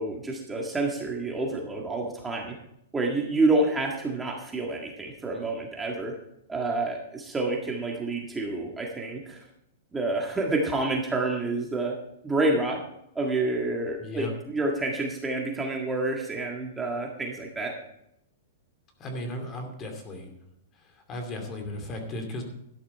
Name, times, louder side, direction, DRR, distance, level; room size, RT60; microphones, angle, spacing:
voice 1, 0.0-2.5 2.9-6.1 6.5-9.4 9.9-11.9 12.2-12.8 13.1-17.7, right 2 dB, 10° right, -1 dB, 1.7 m, -28 dB
voice 2, 14.0-14.3 19.0-20.3 21.1-22.4, left 1 dB, 25° left, 5 dB, 2.6 m, -35 dB
13.0 x 11.0 x 4.4 m, 0.79 s
hypercardioid pair, 150°, 0 cm